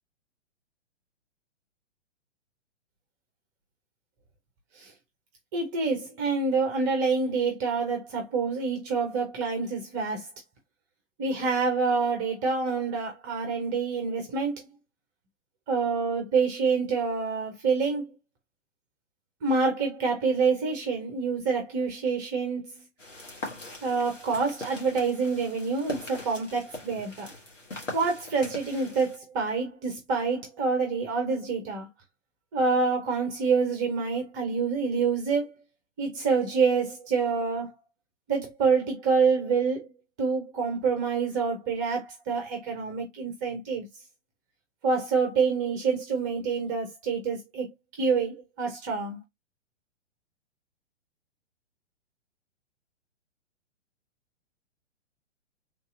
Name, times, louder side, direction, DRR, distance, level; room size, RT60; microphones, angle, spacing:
voice 1, 5.5-10.3 11.2-14.6 15.7-18.1 19.4-22.7 23.8-27.3 27.9-31.9 32.5-35.5 36.0-37.7 38.3-39.9 40.2-43.8 44.8-47.7 48.0-49.2, right 4 dB, 15° right, 0.5 m, -27 dB
sound 1, 23.0-29.2, left 2 dB, 85° left, 1.6 m, -41 dB
3.4 x 2.7 x 2.4 m
figure-of-eight pair, 120°, 36 cm